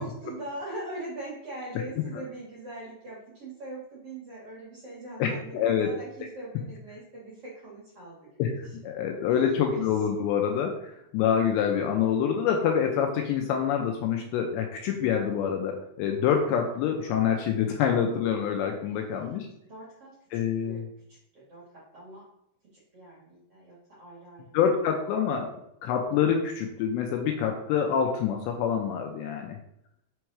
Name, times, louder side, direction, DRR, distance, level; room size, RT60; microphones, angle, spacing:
voice 1, 0.0-8.3 8.9-9.9 18.9-19.4 19.7-20.8 21.3-22.2 22.7-24.4, right 2 dB, 45° right, -7 dB, 2.0 m, -42 dB
voice 2, 5.2-5.9 8.4-19.5 20.3-20.9 24.5-25.5 25.8-29.6, left 8 dB, 80° left, 3 dB, 2.7 m, -26 dB
6.3 x 4.6 x 4.7 m, 0.78 s
omnidirectional pair, 5.5 m